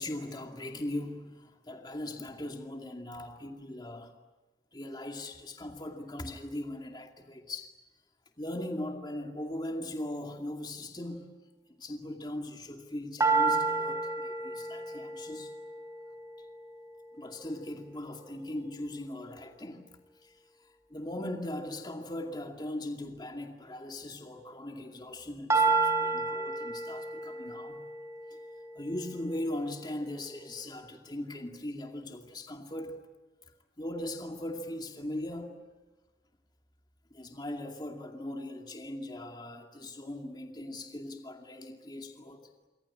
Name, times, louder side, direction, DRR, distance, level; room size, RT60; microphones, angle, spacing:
voice 1, 0.0-4.1 4.7-7.7 8.4-11.4 11.8-15.5 17.2-19.9 20.2-20.3 20.9-27.8 28.3-28.4 28.8-32.9 33.8-35.6 37.1-42.4, left 1 dB, 25° left, 2.4 m, -39 dB
sound 1, 13.2-17.2 25.5-29.6, right 3 dB, 15° right, 3.7 m, -31 dB
27.5 x 25.0 x 8.7 m
head